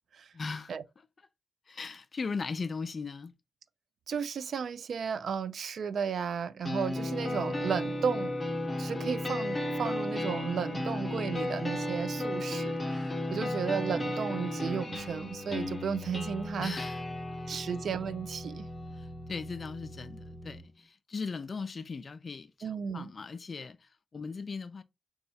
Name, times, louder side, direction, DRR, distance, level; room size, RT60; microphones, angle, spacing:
voice 1, 0.3-0.7 1.7-3.3 13.4-13.7 16.6-17.0 17.3-17.6 19.0-24.8, left 4 dB, 45° left, 0.3 m, -39 dB
voice 2, 4.1-8.3 8.8-16.8 17.5-18.7 22.6-23.1, right 6 dB, 75° right, 0.3 m, -34 dB
sound 1, 6.6-20.6, left 1 dB, 25° left, 0.8 m, -35 dB
4.2 x 2.3 x 2.7 m
cardioid pair, 95°, 0 cm